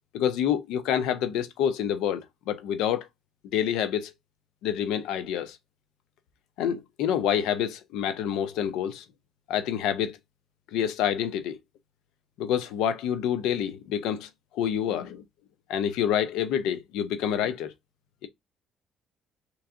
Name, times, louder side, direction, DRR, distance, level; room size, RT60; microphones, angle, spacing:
voice 1, 0.1-3.1 3.5-4.1 4.6-5.6 6.6-9.0 9.5-10.2 10.7-11.6 12.4-15.2 15.7-17.7, left 9 dB, 85° left, 0.7 m, -27 dB
3.5 x 3.1 x 3.8 m
cardioid pair, 115°, 0 cm